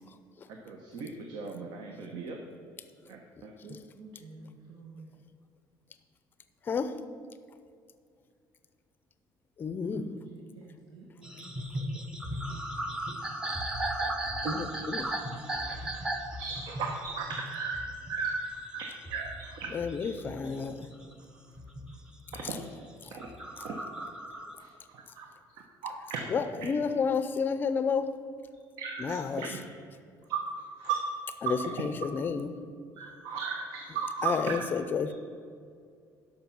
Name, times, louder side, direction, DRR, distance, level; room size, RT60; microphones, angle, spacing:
voice 1, 0.5-2.5 3.1-3.5 14.4-14.6 15.0-17.8 18.1-19.8 22.3-22.6 23.1-23.8 24.6-25.3 25.8-26.3 26.6-26.7 28.8-29.6 30.3-30.4 30.8-31.0 31.4-31.6 32.9-34.7, right 5 dB, 70° right, 2 dB, 1.0 m, -36 dB
voice 2, 3.6-5.2 9.9-11.5 11.8-12.6, right 3 dB, 90° right, -2 dB, 1.5 m, -51 dB
voice 3, 9.6-10.1 14.5-15.1 19.7-20.9 26.3-28.1 29.0-29.5 31.4-32.5 34.2-35.1, left 5 dB, 25° left, 10 dB, 0.5 m, -30 dB
sound 1, 11.2-21.1 21.6-22.6 23.1-24.5, right 1 dB, 10° right, 0.7 m, -36 dB
12.5 x 5.5 x 6.0 m, 2.2 s
cardioid pair, 170°, 8 cm